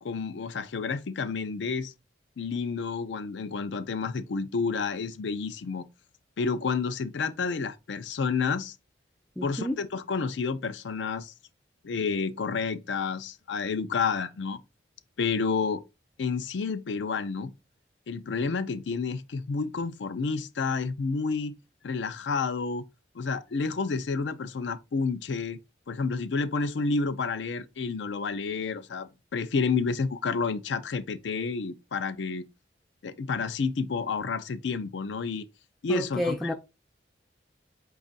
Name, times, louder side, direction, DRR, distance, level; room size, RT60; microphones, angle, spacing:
voice 1, 0.0-1.9 2.4-5.8 6.4-8.7 9.4-11.3 11.8-14.6 15.2-15.8 16.2-17.5 18.1-21.5 21.8-22.8 23.1-25.6 25.9-32.4 33.0-35.5 35.8-36.5, left 4 dB, 90° left, 0.4 m, -30 dB
voice 2, 9.4-9.8 35.9-36.5, left 1 dB, ahead, 0.3 m, -30 dB
5.1 x 2.4 x 4.0 m
head